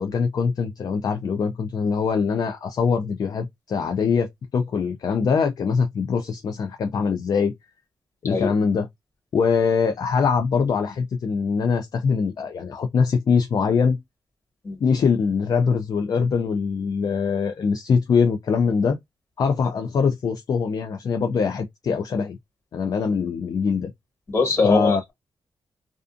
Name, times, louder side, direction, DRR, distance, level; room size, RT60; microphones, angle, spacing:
voice 1, 0.0-7.5 8.2-8.9 9.3-14.0 14.8-19.0 19.4-22.4 22.7-23.9 24.6-25.0, left 5 dB, 50° left, 0.3 m, -23 dB
voice 2, 24.3-25.1, left 3 dB, 30° left, 1.5 m, -21 dB
2.4 x 2.3 x 2.4 m
wide cardioid pair, 125°, 9 cm